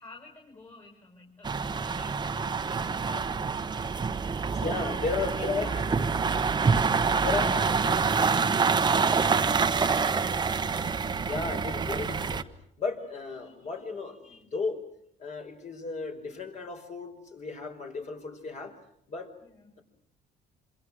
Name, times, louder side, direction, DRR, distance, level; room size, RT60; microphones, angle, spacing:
voice 1, 0.0-4.6 5.1-5.9 19.4-19.8, left 3 dB, 25° left, 1 dB, 5.7 m, -51 dB
sound 1, 1.4-12.4, right 5 dB, 25° right, 1.1 m, -26 dB
voice 2, 4.5-5.7 7.2-8.0 11.3-12.4 12.8-14.8 15.2-18.7 19.1-19.3, left 4 dB, 45° left, 4 dB, 5.3 m, -34 dB
27.0 x 26.5 x 6.4 m, 0.71 s
cardioid pair, 110°, 17 cm